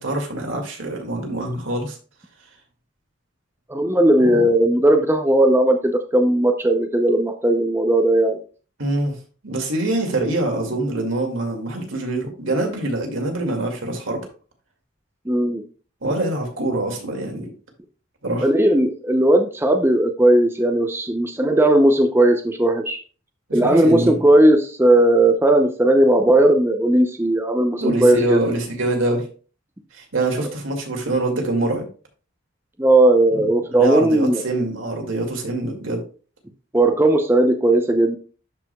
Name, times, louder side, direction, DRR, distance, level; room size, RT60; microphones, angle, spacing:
voice 1, 0.0-2.0 4.2-4.5 8.8-9.1 9.4-14.2 16.0-17.5 18.2-18.5 23.5-24.3 27.8-29.3 29.9-31.8 33.3-33.5 33.8-36.0, right 2 dB, 75° right, 1 dB, 2.3 m, -24 dB
voice 2, 3.7-8.4 15.3-15.6 18.4-23.0 23.5-28.4 32.8-34.4 36.7-38.2, right 1 dB, 10° right, 4 dB, 0.6 m, -17 dB
12.0 x 4.9 x 2.3 m, 0.37 s
head